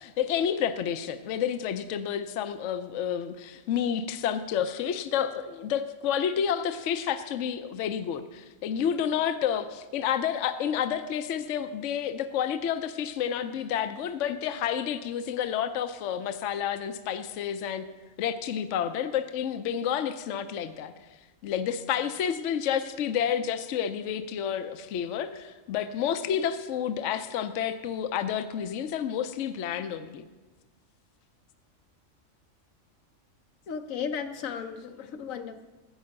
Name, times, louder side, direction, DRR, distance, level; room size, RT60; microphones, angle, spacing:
voice 1, 0.0-17.9 18.2-20.9 21.4-30.3, left 9 dB, 70° left, 9 dB, 0.9 m, -30 dB
voice 2, 33.7-35.7, left 6 dB, 90° left, 7 dB, 1.2 m, -35 dB
15.5 x 5.6 x 6.5 m, 1.2 s
omnidirectional pair, 1.4 m